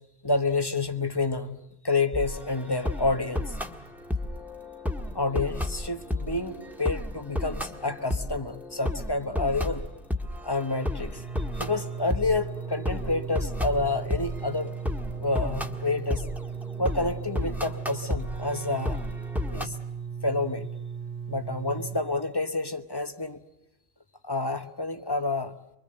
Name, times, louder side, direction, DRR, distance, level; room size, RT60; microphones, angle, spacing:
voice 1, 0.2-3.6 5.1-9.8 10.4-11.2 11.5-14.7 15.2-16.3 16.8-19.1 19.5-19.8 20.2-20.7 21.3-23.4 24.2-25.5, left 3 dB, 25° left, 9 dB, 1.1 m, -29 dB
sound 1, 2.1-19.7, left 1 dB, ahead, 1.6 m, -33 dB
sound 2, 11.1-22.0, right 6 dB, 55° right, 2.8 m, -37 dB
25.0 x 24.5 x 7.8 m, 0.86 s
omnidirectional pair, 1.1 m